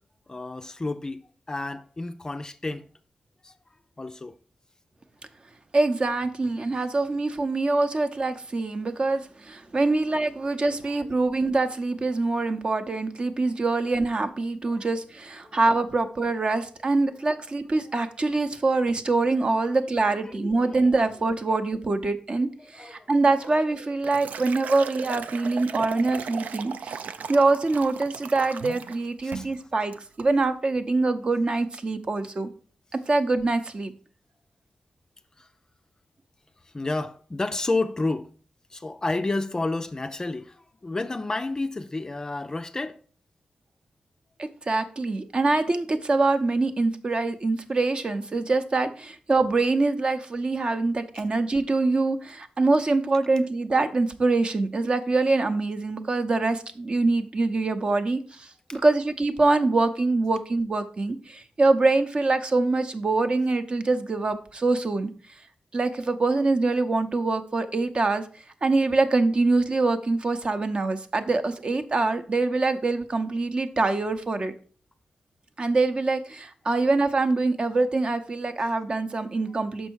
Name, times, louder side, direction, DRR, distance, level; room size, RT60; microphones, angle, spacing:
voice 1, 0.3-2.9 3.4-3.5 4.0-4.3 10.6-10.7 11.0-11.1 14.7-14.9 15.4-15.6 19.7-19.8 20.3-20.9 22.6-23.1 25.3-25.5 27.1-27.3 29.2-29.5 35.4-35.5 36.7-38.3 38.7-43.0 58.7-58.8, left 2 dB, 25° left, 0.4 m, -31 dB
voice 2, 5.7-32.5 33.1-33.9 44.4-65.1 65.7-68.2 68.6-74.5 75.6-79.9, right 3 dB, 40° right, 0.7 m, -24 dB
Liquid, 23.4-29.0 29.3-29.6 29.9-30.3, right 6 dB, 85° right, 0.4 m, -37 dB
6.3 x 5.5 x 4.6 m
wide cardioid pair, 115°, 3 cm